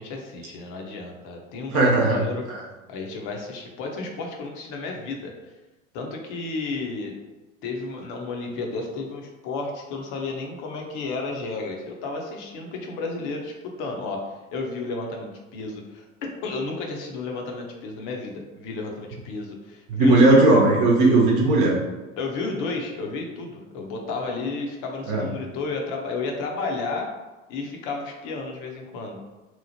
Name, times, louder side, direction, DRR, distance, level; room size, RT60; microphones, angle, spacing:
voice 1, 0.0-2.4 2.9-5.3 5.9-7.1 7.6-16.1 16.4-20.5 22.2-27.1 27.5-29.2, left 3 dB, 50° left, 1 dB, 0.7 m, -32 dB
voice 2, 1.7-2.2 2.5-2.6 19.9-21.7 25.1-25.2, right 2 dB, 50° right, -2 dB, 0.7 m, -17 dB
3.0 x 2.0 x 2.7 m, 1.1 s
hypercardioid pair, 75°, 39 cm